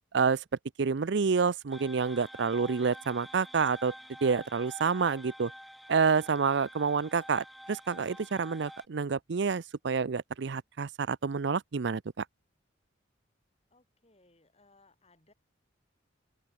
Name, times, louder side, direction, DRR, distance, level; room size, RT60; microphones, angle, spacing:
voice 1, 0.8-3.9 4.2-5.5 5.9-12.2, right 5 dB, 65° right, 0.5 m, -28 dB
sound 1, 1.7-8.9, equal, ahead, 1.2 m, -48 dB
voice 2, 13.7-15.3, left 2 dB, 35° left, 7.4 m, -64 dB
open air
head